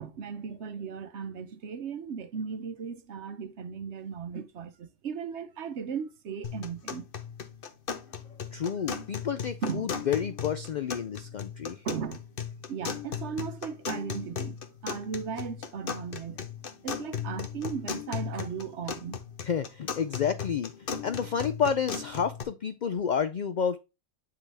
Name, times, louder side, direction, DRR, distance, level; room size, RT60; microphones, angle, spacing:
voice 1, 0.0-7.1 9.6-9.9 11.8-12.3 12.7-16.4 16.8-19.2, right 6 dB, 65° right, 1.0 m, -36 dB
sound 1, 6.4-22.4, left 7 dB, 50° left, 1.0 m, -37 dB
voice 2, 8.5-11.8 19.4-23.8, left 7 dB, 80° left, 0.4 m, -30 dB
9.8 x 3.9 x 3.3 m
omnidirectional pair, 1.3 m